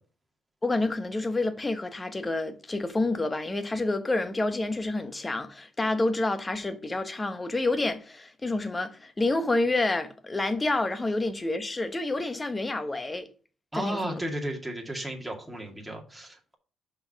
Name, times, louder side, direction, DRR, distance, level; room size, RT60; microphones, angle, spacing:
voice 1, 0.6-13.3 13.7-14.2, left 2 dB, 20° left, 1.0 m, -28 dB
voice 2, 13.7-16.6, right 1 dB, 5° right, 2.0 m, -34 dB
5.6 x 4.6 x 5.7 m
cardioid pair, 90°, 0 cm